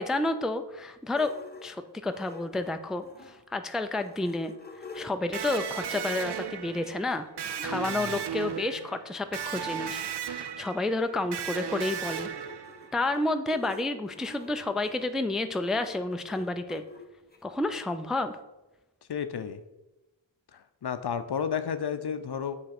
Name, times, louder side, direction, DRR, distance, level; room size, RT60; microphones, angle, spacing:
voice 1, 0.0-1.4 1.6-4.5 4.9-7.3 7.6-12.3 12.9-16.8 17.4-18.4, left 2 dB, ahead, 8 dB, 0.4 m, -30 dB
sound 1, 1.1-3.4 3.8-7.7 8.5-8.6 8.9-9.0 9.1-17.4, left 4 dB, 20° left, 1.0 m, -48 dB
Electric guitar, 5.3-13.0, right 8 dB, 60° right, 0.6 m, -36 dB
voice 2, 7.7-8.2 19.1-19.6 20.5-22.6, left 7 dB, 60° left, 10 dB, 0.6 m, -32 dB
7.8 x 3.2 x 5.8 m, 1.0 s
wide cardioid pair, 55°, 46 cm